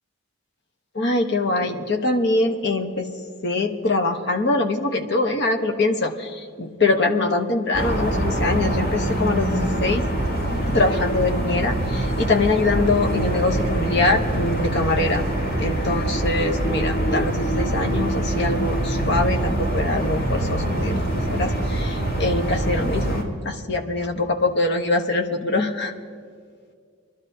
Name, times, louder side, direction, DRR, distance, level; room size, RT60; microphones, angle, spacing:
voice 1, 0.9-3.1 3.4-10.1 10.7-15.2 15.6-25.9, left 2 dB, 50° left, 5 dB, 1.0 m, -23 dB
sound 1, 7.7-23.2, right 1 dB, 70° left, 3.7 m, -24 dB
24.0 x 12.0 x 2.7 m, 2.1 s
head